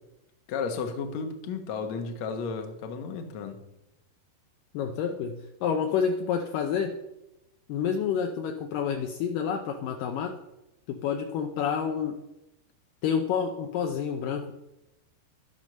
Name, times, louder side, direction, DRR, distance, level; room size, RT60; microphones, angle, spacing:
voice 1, 0.5-3.6, left 5 dB, 60° left, 1.9 m, -33 dB
voice 2, 4.7-6.9 7.7-10.3 10.9-12.2 13.0-14.5, left 7 dB, 80° left, 1.9 m, -29 dB
12.0 x 10.5 x 6.4 m
omnidirectional pair, 4.9 m